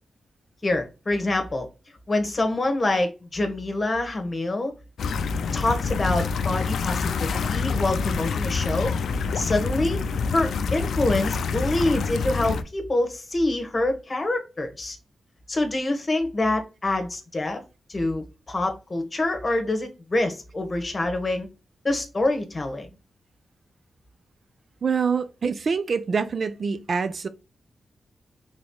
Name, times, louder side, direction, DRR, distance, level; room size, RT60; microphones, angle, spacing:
voice 1, 0.6-1.7 2.1-4.7 5.5-8.9 9.3-10.0 10.3-15.0 15.5-17.6 17.9-21.5 21.8-22.9, left 2 dB, 35° left, 1.1 m, -26 dB
sound 1, 5.0-12.6, left 5 dB, 80° left, 0.4 m, -26 dB
voice 2, 24.8-27.3, right 5 dB, 60° right, 0.4 m, -25 dB
4.2 x 3.4 x 2.2 m
cardioid pair, 60°, 0 cm